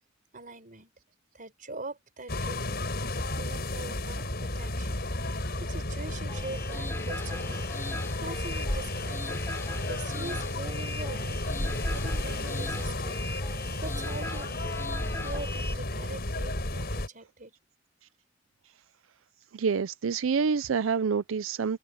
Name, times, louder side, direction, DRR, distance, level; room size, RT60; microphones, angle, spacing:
voice 1, 0.3-0.9 1.3-7.6 8.2-9.6 9.9-11.4 11.9-13.2 13.8-17.5, right 3 dB, 45° right, 4.2 m, -43 dB
sound 1, 2.3-17.1, left 1 dB, 55° left, 5.5 m, -32 dB
sound 2, 6.3-15.7, left 2 dB, 15° left, 7.0 m, -40 dB
voice 2, 19.5-21.8, right 5 dB, 90° right, 0.5 m, -27 dB
head